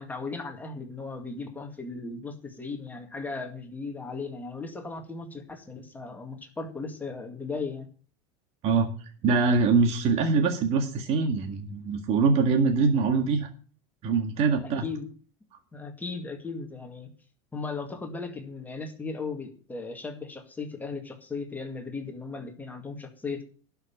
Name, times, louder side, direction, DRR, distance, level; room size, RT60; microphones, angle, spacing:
voice 1, 0.0-7.9 14.6-15.1 15.7-17.1 17.5-23.4, left 4 dB, 10° left, 3 dB, 2.0 m, -37 dB
voice 2, 9.2-13.5 14.0-14.9, right 4 dB, 45° right, 5 dB, 1.8 m, -23 dB
12.0 x 5.8 x 8.7 m, 0.40 s
supercardioid pair, 145°, 15 cm